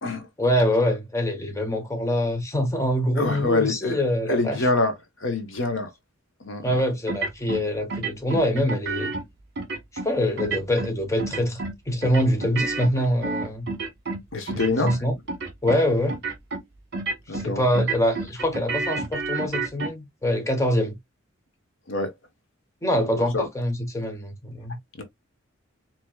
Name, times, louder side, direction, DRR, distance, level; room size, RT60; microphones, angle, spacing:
voice 1, 0.4-4.7 6.6-9.1 10.0-11.6 11.9-13.7 14.5-15.1 15.6-16.2 17.3-21.0 22.8-24.8, equal, 15° left, 1.0 m, -24 dB
voice 2, 3.2-4.0 4.3-4.9 5.2-5.9 6.4-6.8 14.3-14.9 17.3-17.6 21.9-22.1 23.2-23.5 25.0-25.1, left 3 dB, 65° left, 1.1 m, -25 dB
sound 1, 7.1-7.6 7.9-9.2 9.6-10.1 10.4-10.9 11.2-11.7 12.0-14.2 14.5-15.0 15.3-15.8 16.1-16.6 16.9-17.5 17.7-19.9, right 3 dB, 55° right, 1.2 m, -29 dB
4.5 x 3.0 x 2.3 m
head